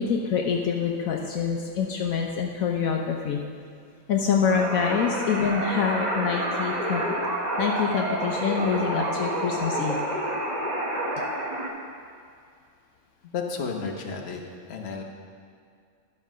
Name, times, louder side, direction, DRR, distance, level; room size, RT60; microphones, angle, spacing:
voice 1, 0.0-3.4 4.1-7.2 7.6-10.0, left 6 dB, 70° left, 1 dB, 1.1 m, -26 dB
sound 1, 4.5-11.7, right 1 dB, 30° right, 1.0 m, -29 dB
voice 2, 13.3-14.4 14.7-15.0, left 5 dB, 50° left, 1 dB, 1.1 m, -32 dB
11.5 x 5.4 x 6.1 m, 2.3 s
omnidirectional pair, 1.6 m